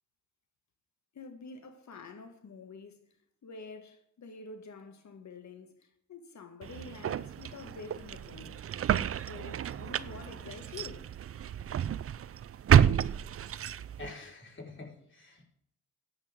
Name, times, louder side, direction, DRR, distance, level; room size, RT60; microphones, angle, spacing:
voice 1, 1.1-3.0 3.4-8.6 9.1-11.1, left 4 dB, 60° left, 2.2 m, -48 dB
sound 1, 6.6-14.1, right 9 dB, 45° right, 0.5 m, -29 dB
voice 2, 14.0-15.4, left 3 dB, 35° left, 4.9 m, -46 dB
15.0 x 9.5 x 3.8 m
supercardioid pair, 60°, 32 cm